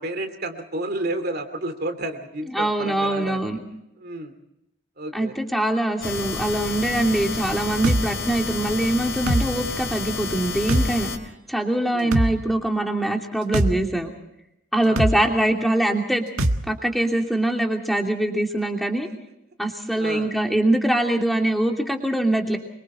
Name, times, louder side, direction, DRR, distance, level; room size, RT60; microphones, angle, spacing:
voice 1, 0.0-3.4 4.0-4.3 5.0-5.3 11.9-12.1 14.8-15.1 20.0-20.3, right 1 dB, 45° right, 8 dB, 2.7 m, -31 dB
voice 2, 2.5-3.6 5.1-11.1 11.5-14.1 14.7-16.2 16.6-19.1 19.6-22.6, right 1 dB, ahead, 2 dB, 2.9 m, -23 dB
sound 1, 6.0-11.2, left 4 dB, 60° left, 3.7 m, -30 dB
sound 2, 7.8-8.0 9.3-9.5 10.7-10.9 12.1-12.3 13.5-13.7 15.0-15.2 16.4-16.6, right 1 dB, 85° right, 1.6 m, -20 dB
26.5 x 24.0 x 4.4 m, 0.84 s
head